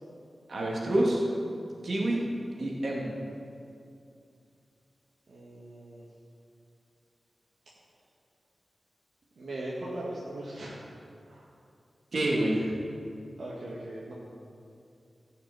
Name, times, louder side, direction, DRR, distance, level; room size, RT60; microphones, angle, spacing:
voice 1, 0.5-1.2 1.8-2.2 2.6-3.1 12.1-12.8, right 1 dB, 65° right, -3 dB, 2.5 m, -27 dB
voice 2, 5.3-6.0 9.4-10.8 11.3-11.5 13.4-14.1, right 1 dB, 80° right, -6 dB, 1.9 m, -39 dB
15.0 x 6.6 x 7.7 m, 2.5 s
wide cardioid pair, 115°, 0 cm